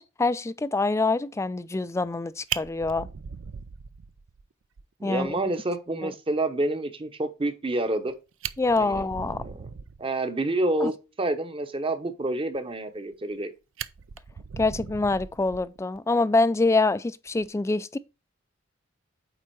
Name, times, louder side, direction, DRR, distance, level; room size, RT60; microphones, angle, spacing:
voice 1, 0.0-3.1 5.0-5.4 6.0-6.1 8.6-9.4 10.8-10.9 14.6-18.0, left 3 dB, 15° left, 0.3 m, -25 dB
Fire, 2.1-2.2 2.5-4.4 4.8-4.9 5.3-5.4 5.7-5.8 7.9-8.0 8.3-10.1 12.9-13.4 13.8-16.0 17.3-17.5, right 8 dB, 75° right, 0.5 m, -38 dB
voice 2, 5.0-8.1 8.8-9.1 9.4-9.7 10.0-10.9 11.2-13.5, right 2 dB, 25° right, 0.9 m, -28 dB
8.8 x 3.6 x 4.6 m
head